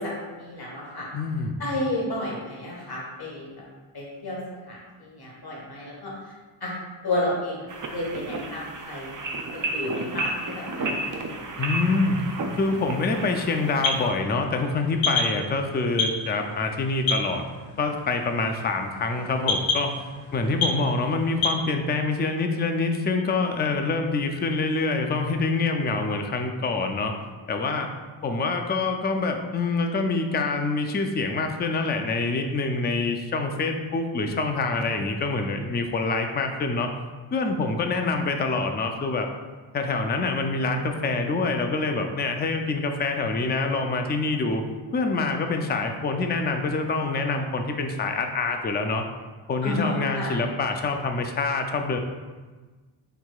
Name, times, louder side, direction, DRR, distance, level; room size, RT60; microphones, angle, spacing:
voice 1, 0.0-1.1 1.6-3.5 3.9-4.4 4.7-6.1 6.6-6.7 7.0-7.6 7.9-9.1 9.5-11.4 49.6-50.3, left 1 dB, 50° left, -4 dB, 1.3 m, -31 dB
voice 2, 1.1-1.6 11.6-12.2 12.6-17.4 17.8-20.0 20.3-27.1 27.5-27.9 28.2-36.9 37.3-39.3 39.7-44.6 44.9-49.0 49.5-52.0, left 3 dB, 25° left, 5 dB, 0.3 m, -26 dB
sound 1, 7.7-14.1, right 2 dB, 40° right, 0.5 m, -32 dB
sound 2, 11.7-21.6, left 3 dB, 70° left, 0.7 m, -31 dB
4.6 x 3.8 x 2.3 m, 1.3 s
wide cardioid pair, 65°, 48 cm